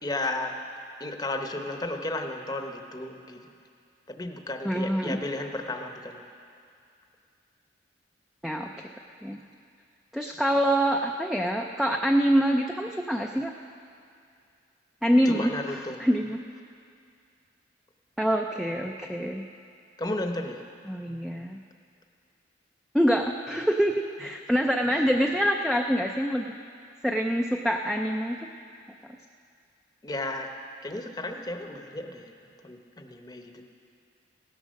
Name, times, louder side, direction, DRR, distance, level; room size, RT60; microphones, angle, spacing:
voice 1, 0.0-0.6 1.0-3.4 4.1-6.2 15.3-16.0 20.0-20.6 24.9-25.0 30.0-30.5 30.8-32.3 32.6-33.6, left 2 dB, 20° left, 4 dB, 0.8 m, -33 dB
voice 2, 4.6-5.2 8.4-8.9 9.2-9.4 10.1-13.5 15.0-16.4 18.2-19.4 20.9-21.6 22.9-26.5 27.0-28.4, equal, ahead, 2 dB, 0.4 m, -25 dB
16.0 x 10.0 x 6.4 m, 2.4 s
head